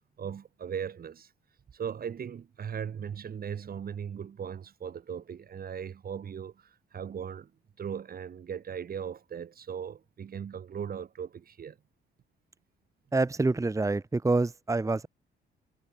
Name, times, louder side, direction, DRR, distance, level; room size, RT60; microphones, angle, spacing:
voice 1, 0.2-1.3 1.7-7.5 7.8-11.8, right 7 dB, 50° right, 1.8 m, -38 dB
voice 2, 13.1-15.1, right 3 dB, 15° right, 1.2 m, -26 dB
cardioid pair, 90°, 20 cm